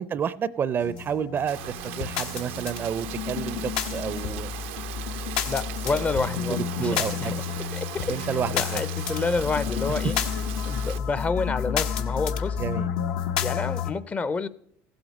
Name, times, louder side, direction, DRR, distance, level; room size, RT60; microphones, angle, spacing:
voice 1, 0.0-4.5 5.9-6.0 6.5-7.3 8.1-8.8 12.6-12.9, right 7 dB, 35° right, 18 dB, 0.4 m, -30 dB
sound 1, 0.8-13.9, left 8 dB, 85° left, 0.9 m, -30 dB
Rain, 1.5-11.0, right 15 dB, 85° right, 0.5 m, -38 dB
sound 2, 2.0-2.3 4.2-4.5 4.8-4.9 6.1-6.4 8.0-8.3, left 7 dB, 65° left, 0.8 m, -38 dB
voice 2, 5.5-7.4 7.7-10.2 10.7-12.6 13.4-14.5, left 4 dB, 25° left, 17 dB, 0.5 m, -29 dB
15.5 x 7.9 x 5.2 m, 0.72 s
supercardioid pair, 110°, 6 cm